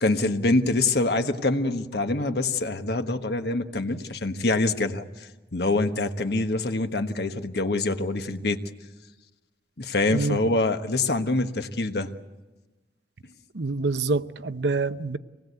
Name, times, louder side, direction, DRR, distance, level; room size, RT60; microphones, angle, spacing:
voice 1, 0.0-8.6 9.8-12.1, left 2 dB, 65° left, 1.3 m, -25 dB
voice 2, 13.5-15.2, right 3 dB, 75° right, 0.8 m, -26 dB
25.5 x 19.5 x 8.1 m
head